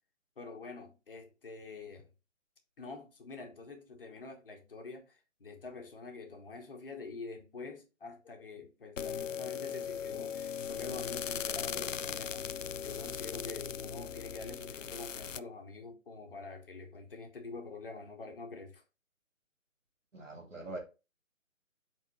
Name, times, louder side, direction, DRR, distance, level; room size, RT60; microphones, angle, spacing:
voice 1, 0.4-2.1 2.8-12.5 12.8-18.8, left 3 dB, 40° left, 1.6 m, -46 dB
sound 1, 9.0-15.4, left 7 dB, 65° left, 0.5 m, -38 dB
voice 2, 20.1-20.8, right 2 dB, 65° right, 2.9 m, -43 dB
6.7 x 4.2 x 4.2 m
figure-of-eight pair, 145°, 41 cm